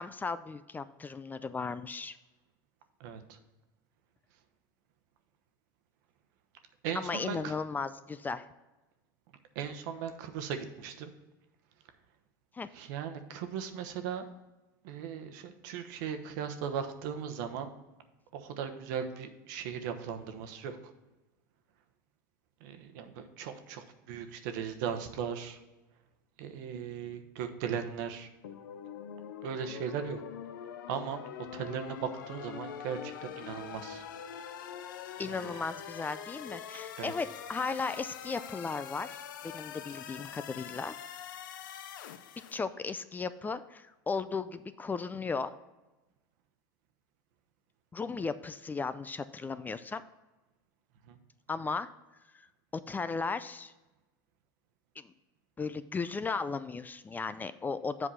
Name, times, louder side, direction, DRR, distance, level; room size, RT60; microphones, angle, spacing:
voice 1, 0.0-2.2 6.9-8.5 12.5-12.7 35.2-39.2 39.4-40.9 42.5-45.6 47.9-50.0 51.5-51.9 52.7-53.7 55.0-55.1 55.6-58.1, left 4 dB, 15° left, 13 dB, 0.4 m, -36 dB
voice 2, 3.0-3.4 6.8-7.5 9.5-11.1 12.7-14.3 14.8-17.7 18.3-20.8 22.6-25.6 26.4-28.3 29.4-30.2 30.9-31.2 31.5-34.0 35.3-35.6 37.0-37.1 51.1-51.2, right 7 dB, 70° right, 7 dB, 1.0 m, -38 dB
sound 1, 28.4-42.6, left 9 dB, 90° left, 0.6 m, -44 dB
7.8 x 4.8 x 5.6 m, 1.1 s
supercardioid pair, 105°, 10 cm